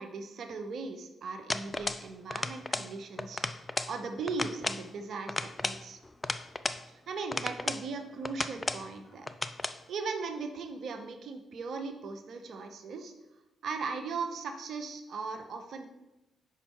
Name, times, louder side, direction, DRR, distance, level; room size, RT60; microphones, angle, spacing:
voice 1, 0.0-6.0 6.9-9.3 9.9-13.1 13.6-15.9, right 4 dB, 60° right, 6 dB, 0.7 m, -38 dB
sound 1, 1.5-2.1 2.3-2.9 3.2-3.9 4.3-4.8 5.3-6.8 7.3-7.9 8.2-8.9 9.3-9.8, left 2 dB, 25° left, 0.4 m, -34 dB
5.8 x 5.3 x 4.5 m, 0.96 s
hypercardioid pair, 45°, 0 cm